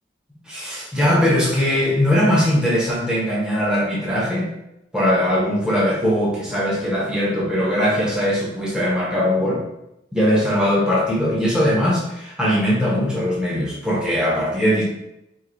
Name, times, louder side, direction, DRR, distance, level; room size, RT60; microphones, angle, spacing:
voice 1, 0.4-4.5 4.9-9.6 10.1-14.8, equal, 5° right, -7 dB, 0.8 m, -20 dB
4.6 x 2.6 x 2.6 m, 0.86 s
head